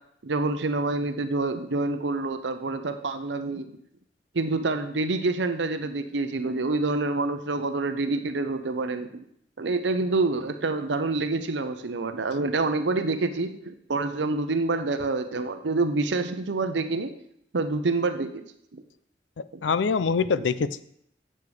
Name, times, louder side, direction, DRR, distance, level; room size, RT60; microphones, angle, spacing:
voice 1, 0.2-3.7 4.3-9.2 9.6-17.1 17.5-18.4 18.7-18.8 19.5-19.6, right 3 dB, 70° right, 8 dB, 0.7 m, -27 dB
voice 2, 19.4-20.8, left 5 dB, 75° left, 15 dB, 0.5 m, -25 dB
8.7 x 6.6 x 4.8 m, 0.72 s
head